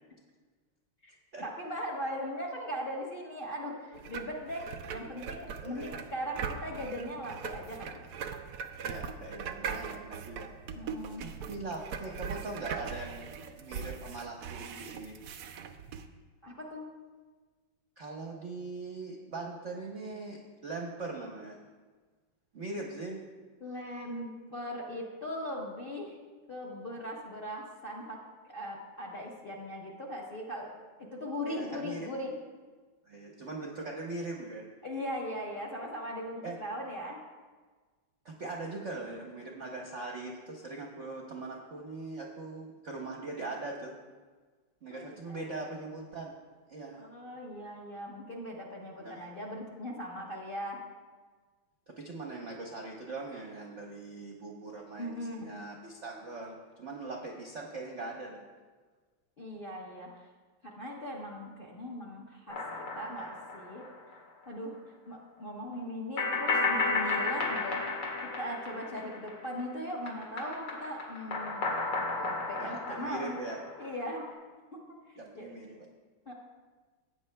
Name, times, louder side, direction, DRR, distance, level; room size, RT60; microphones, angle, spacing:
voice 1, 1.4-4.6 4.9-8.0 10.7-11.3 16.4-16.9 23.6-26.2 26.5-28.2 28.4-30.8 31.1-32.3 34.8-37.2 44.9-45.4 46.9-50.8 55.0-55.4 59.4-60.3 60.6-63.8 64.5-67.8 68.2-71.7 72.2-73.3 73.8-74.2 74.7-75.6 76.3-76.4, equal, 40° left, -2 dB, 0.9 m, -39 dB
sound 1, 3.9-16.1, right 6 dB, 90° right, 0.8 m, -41 dB
voice 2, 5.6-6.0 8.8-10.5 11.2-13.3 13.6-15.2 18.0-21.6 22.5-23.2 31.5-32.1 33.1-34.7 36.4-36.6 38.2-43.9 44.8-46.3 46.7-47.0 49.0-49.3 52.0-58.4 72.6-73.6 75.2-75.9, right 3 dB, 60° right, -1 dB, 0.8 m, -41 dB
sound 2, 62.5-64.1 64.4-64.5 66.2-69.6 69.9-74.1, left 3 dB, 75° left, 2.3 m, -33 dB
16.0 x 8.7 x 2.2 m, 1.4 s
omnidirectional pair, 2.3 m